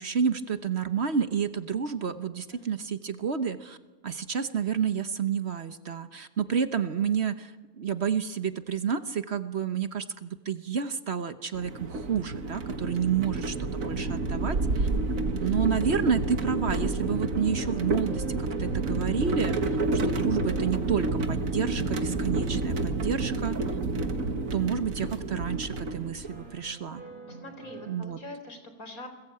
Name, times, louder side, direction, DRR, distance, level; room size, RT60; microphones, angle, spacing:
voice 1, 0.0-3.8 4.0-14.9 15.4-19.5 20.0-23.6 24.5-27.0 27.9-28.2, right 7 dB, 50° right, 10 dB, 1.2 m, -30 dB
sound 1, 11.5-26.5, right 2 dB, 70° right, 2.1 m, -29 dB
sound 2, 17.3-28.0, right 3 dB, 30° right, 7.5 m, -49 dB
voice 2, 27.3-29.1, left 1 dB, 75° left, 7 dB, 4.3 m, -44 dB
29.5 x 21.0 x 8.7 m, 1.4 s
omnidirectional pair, 1.5 m